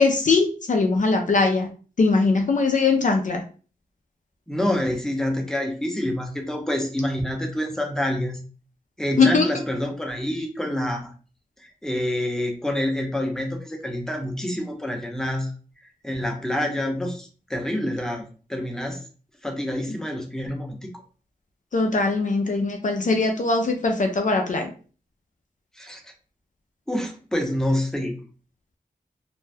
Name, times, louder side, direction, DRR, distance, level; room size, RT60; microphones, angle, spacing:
voice 1, 0.0-1.7 2.0-3.4 9.2-9.4 21.7-24.7, left 3 dB, 55° left, 4 dB, 0.5 m, -21 dB
voice 2, 4.5-8.4 9.0-11.1 11.6-15.5 16.0-19.0 19.4-20.9 25.8-26.0 26.9-28.2, left 1 dB, 5° left, 2 dB, 0.7 m, -27 dB
2.6 x 2.2 x 3.3 m, 0.38 s
wide cardioid pair, 85°, 15 cm